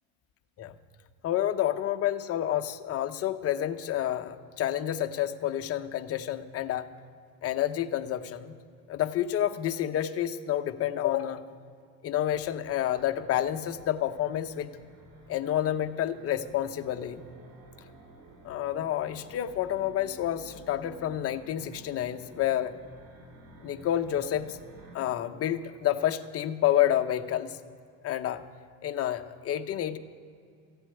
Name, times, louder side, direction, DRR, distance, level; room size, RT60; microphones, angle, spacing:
voice 1, 1.2-6.9 7.4-8.5 8.9-11.4 12.0-14.7 15.3-17.2 18.4-22.7 23.6-24.6 24.9-27.6 28.0-28.4 28.8-30.0, left 11 dB, 40° left, 7 dB, 0.9 m, -29 dB
sound 1, 12.1-25.0, right 2 dB, 65° right, 4.0 m, -52 dB
14.5 x 8.2 x 9.3 m, 2.3 s
cardioid pair, 135°, 36 cm